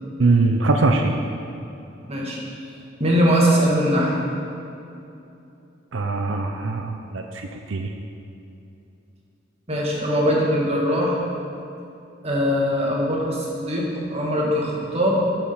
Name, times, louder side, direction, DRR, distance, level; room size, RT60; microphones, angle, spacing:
voice 1, 0.2-1.2 5.9-7.9, right 3 dB, 85° right, 4 dB, 0.7 m, -21 dB
voice 2, 2.1-2.4 3.0-4.1 9.7-11.2 12.2-15.2, equal, 35° right, -3 dB, 2.0 m, -21 dB
9.7 x 7.5 x 5.8 m, 2.8 s
head